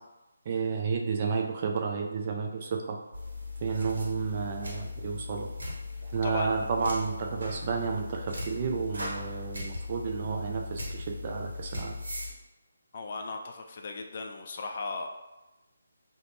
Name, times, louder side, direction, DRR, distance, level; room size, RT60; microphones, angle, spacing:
voice 1, 0.5-3.0 3.6-5.5 6.1-11.9, right 5 dB, 35° right, 2 dB, 0.4 m, -31 dB
sound 1, 3.1-12.3, left 3 dB, 70° right, 0.9 m, -38 dB
voice 2, 6.2-6.7 12.9-15.1, left 3 dB, 45° left, 3 dB, 0.3 m, -36 dB
2.4 x 2.1 x 3.3 m, 1.0 s
figure-of-eight pair, 155°, 0 cm